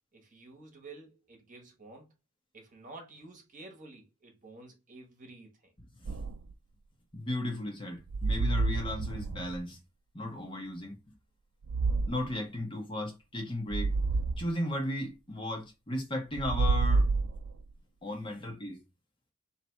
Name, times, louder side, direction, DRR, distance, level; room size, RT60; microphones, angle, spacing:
voice 1, 0.1-2.1 2.5-5.7, right 2 dB, 40° right, 1.3 m, -51 dB
sound 1, 6.1-6.5 8.1-9.6 11.6-12.3 13.7-14.5 16.3-17.7, right 3 dB, 85° right, 0.4 m, -29 dB
voice 2, 7.1-9.8 10.1-11.0 12.1-13.9 14.4-17.1 18.0-18.8, left 1 dB, 25° left, 1.1 m, -35 dB
3.3 x 2.8 x 4.4 m
head